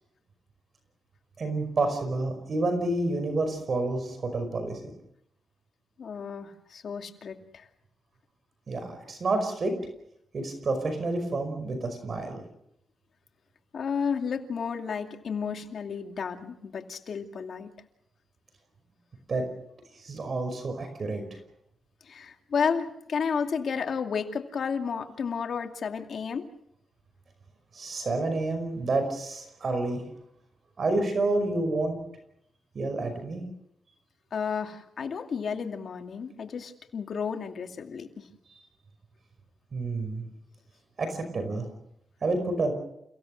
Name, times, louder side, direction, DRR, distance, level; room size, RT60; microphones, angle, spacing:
voice 1, 1.4-4.9 8.7-9.7 10.3-12.4 19.3-19.4 20.0-21.2 27.7-30.0 30.8-32.0 32.8-33.4 39.7-40.2 41.0-41.7 42.2-42.7, right 2 dB, 45° right, 7 dB, 5.4 m, -29 dB
voice 2, 6.0-7.7 13.7-17.7 22.0-26.5 34.3-38.3, left 6 dB, 60° left, 4 dB, 2.5 m, -32 dB
30.0 x 17.0 x 6.6 m, 0.78 s
cardioid pair, 95°, 0 cm